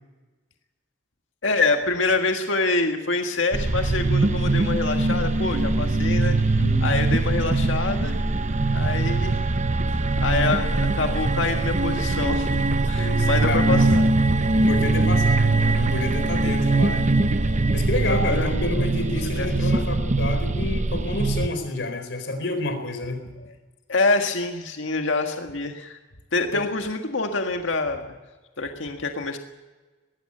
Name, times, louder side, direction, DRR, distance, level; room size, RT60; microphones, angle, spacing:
voice 1, 1.4-6.4 6.8-8.2 8.7-9.4 9.9-12.6 12.9-14.1 18.1-18.5 18.8-18.9 19.4-19.8 23.4-23.5 23.9-26.0 26.3-28.2 28.6-29.4, left 3 dB, 85° left, 4 dB, 1.7 m, -26 dB
sound 1, 3.5-21.5, right 2 dB, 40° right, 0.8 m, -22 dB
voice 2, 6.6-7.0 13.0-13.9 14.5-17.1 17.7-23.3 26.5-26.6, left 2 dB, 65° left, 7 dB, 4.2 m, -29 dB
19.5 x 15.5 x 9.9 m, 1.2 s
head